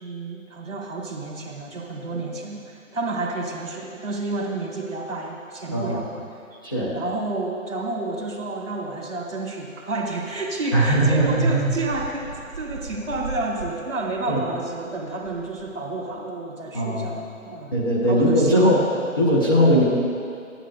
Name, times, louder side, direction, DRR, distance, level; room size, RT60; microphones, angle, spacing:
voice 1, 0.0-6.2 6.9-12.3 12.6-17.8 18.1-18.8, right 2 dB, 65° right, 0 dB, 1.7 m, -30 dB
sound 1, 10.4-10.5 11.0-16.2, right 3 dB, 10° right, 2.0 m, -39 dB
voice 2, 10.7-11.7 14.3-14.4 16.7-17.2 17.7-18.8 19.2-19.8, equal, 15° left, -8 dB, 0.5 m, -19 dB
12.5 x 10.0 x 2.3 m, 2.4 s
figure-of-eight pair, 150°, 41 cm